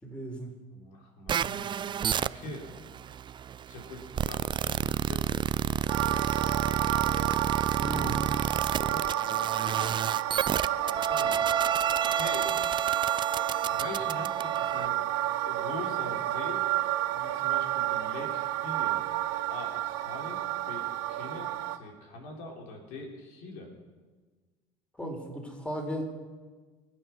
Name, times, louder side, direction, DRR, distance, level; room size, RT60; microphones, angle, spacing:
voice 1, 0.0-0.6 2.4-2.5 7.1-7.3 7.8-8.3 25.0-26.0, equal, 10° left, 2 dB, 4.2 m, -36 dB
voice 2, 0.7-3.0 3.7-7.0 8.6-9.1 9.6-9.9 10.9-12.5 13.7-15.0 15.4-16.6 17.1-19.0 19.5-23.7, left 2 dB, 75° left, 0 dB, 4.1 m, -44 dB
sound 1, 1.3-14.9, right 8 dB, 30° right, 0.4 m, -30 dB
sound 2, 5.9-21.8, right 13 dB, 80° right, 1.2 m, -30 dB
24.0 x 9.1 x 6.0 m, 1.4 s
supercardioid pair, 85°, 15 cm